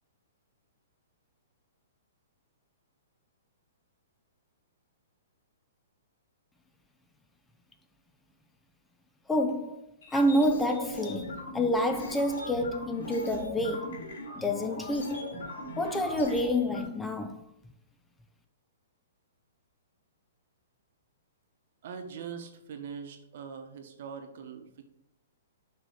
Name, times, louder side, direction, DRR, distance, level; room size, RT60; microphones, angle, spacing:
voice 1, 9.3-14.0 14.4-15.3 15.8-17.4, left 1 dB, 5° left, 0.3 m, -28 dB
sound 1, 10.0-16.8, left 1 dB, 70° left, 1.9 m, -39 dB
voice 2, 21.8-24.8, right 6 dB, 60° right, 1.0 m, -42 dB
6.7 x 3.1 x 4.8 m
hypercardioid pair, 150°, 0 cm